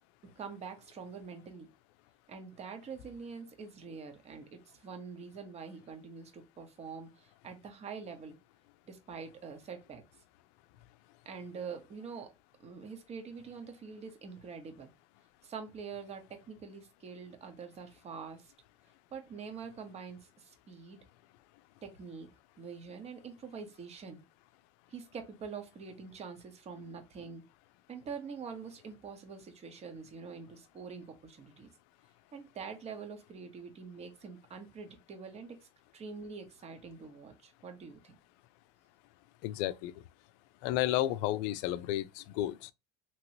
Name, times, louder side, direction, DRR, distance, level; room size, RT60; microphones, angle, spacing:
voice 1, 0.2-1.7 2.3-8.3 8.9-10.0 11.2-12.3 12.6-14.9 15.4-18.5 19.1-21.0 21.8-24.2 24.9-27.4 27.9-31.7 32.3-38.1, right 5 dB, 35° right, 1.0 m, -45 dB
voice 2, 39.4-39.9 40.6-42.7, left 14 dB, 70° left, 0.4 m, -32 dB
3.0 x 2.9 x 2.8 m
supercardioid pair, 105°, 19 cm